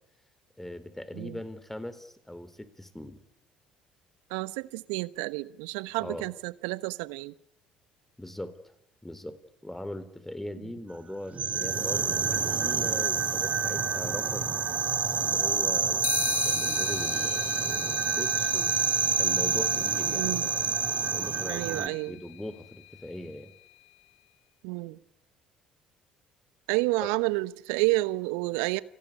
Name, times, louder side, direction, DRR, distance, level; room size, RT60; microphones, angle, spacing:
voice 1, 0.6-3.2 6.0-6.3 8.2-8.7 9.0-14.5 15.2-18.7 19.2-20.5 21.0-23.5, left 1 dB, 5° left, 3.5 m, -40 dB
voice 2, 4.3-7.3 20.1-20.5 21.5-22.1 24.6-25.0 26.7-28.8, right 22 dB, 70° right, 1.0 m, -30 dB
sound 1, 11.3-21.9, right 6 dB, 40° right, 2.1 m, -27 dB
sound 2, 16.0-23.7, left 21 dB, 70° left, 1.7 m, -39 dB
29.5 x 19.0 x 10.0 m
figure-of-eight pair, 55°, 4 cm